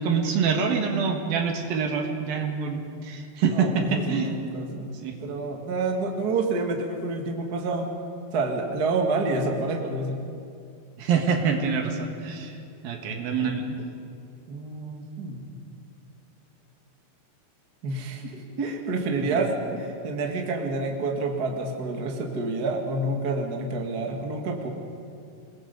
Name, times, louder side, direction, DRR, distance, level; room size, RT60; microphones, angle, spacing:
voice 1, 0.0-4.4 5.0-5.1 11.0-13.8 19.2-19.4, right 5 dB, 65° right, 4 dB, 3.1 m, -26 dB
voice 2, 3.5-4.9 5.2-7.9 8.3-10.2 13.4-13.5 14.5-15.6 17.8-24.7, right 3 dB, 45° right, 2 dB, 1.3 m, -28 dB
27.5 x 20.0 x 5.4 m, 2.4 s
omnidirectional pair, 4.9 m